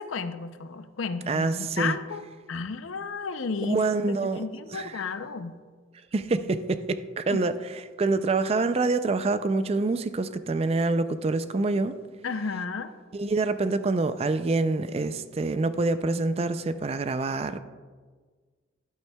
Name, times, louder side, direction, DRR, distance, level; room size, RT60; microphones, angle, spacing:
voice 1, 0.0-3.8 4.1-5.5 7.3-7.4 12.2-12.9, left 4 dB, 85° left, 0.5 m, -33 dB
voice 2, 1.3-2.0 3.6-4.4 4.7-5.0 6.1-7.5 8.0-12.0 13.1-17.6, right 3 dB, 30° right, 0.3 m, -26 dB
12.0 x 8.8 x 2.2 m
head